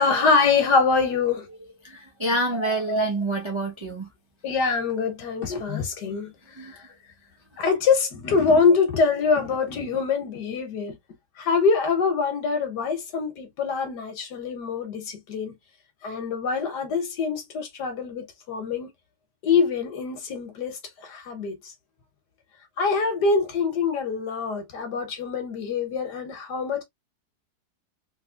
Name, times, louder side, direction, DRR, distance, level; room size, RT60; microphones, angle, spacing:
voice 1, 0.0-1.5 2.5-3.1 4.4-6.8 7.6-11.0 11.4-15.5 16.0-18.9 19.4-21.6 22.8-26.8, left 5 dB, 80° left, 1.7 m, -24 dB
voice 2, 1.8-4.1 6.6-6.7, right 1 dB, 40° right, 0.4 m, -27 dB
3.5 x 3.2 x 2.3 m
omnidirectional pair, 1.8 m